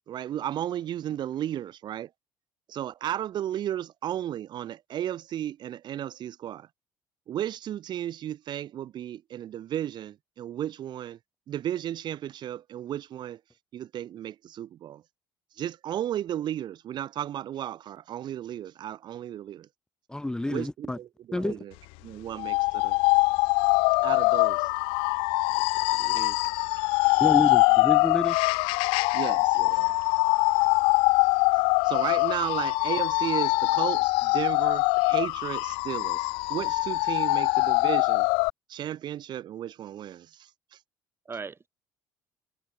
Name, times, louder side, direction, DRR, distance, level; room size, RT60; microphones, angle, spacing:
voice 1, 0.1-2.1 2.7-6.7 7.3-11.2 11.5-13.4 13.7-15.0 15.6-19.7 20.5-21.7 22.0-23.0 24.0-24.7 26.1-26.2 26.8-27.2 29.1-29.8 31.8-38.3 38.7-40.8, right 11 dB, 55° right, 1.2 m, -34 dB
voice 2, 20.1-21.0 21.3-21.6 27.2-28.4, left 1 dB, 10° left, 1.0 m, -29 dB
sound 1, 22.4-38.5, left 28 dB, 85° left, 0.7 m, -23 dB
voice 3, 25.9-26.5 29.5-29.9 41.3-41.7, right 5 dB, 30° right, 1.9 m, -41 dB
supercardioid pair, 85°, 9 cm